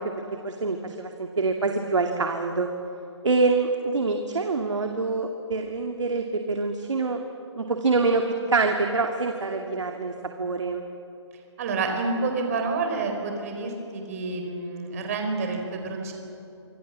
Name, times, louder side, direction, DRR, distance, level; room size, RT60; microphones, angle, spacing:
voice 1, 0.4-2.7 3.2-7.2 7.6-10.8, right 3 dB, 85° right, 4 dB, 2.4 m, -25 dB
voice 2, 11.6-16.1, right 3 dB, 30° right, 4 dB, 4.5 m, -28 dB
28.0 x 26.0 x 7.5 m, 2.9 s
hypercardioid pair, 170°, 15 cm